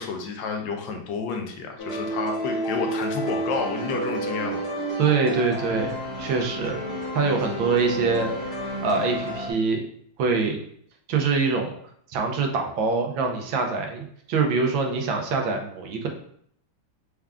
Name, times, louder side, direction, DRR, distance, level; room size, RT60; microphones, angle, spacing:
voice 1, 0.0-4.6, left 5 dB, 75° left, 3 dB, 1.3 m, -30 dB
sound 1, 1.8-9.5, right 1 dB, 20° left, 0.6 m, -30 dB
voice 2, 5.0-6.8 7.1-8.3 8.8-9.8 10.2-10.6 11.1-11.7 12.1-16.1, right 4 dB, 80° right, 3 dB, 1.4 m, -24 dB
4.5 x 2.4 x 3.4 m, 0.65 s
omnidirectional pair, 2.1 m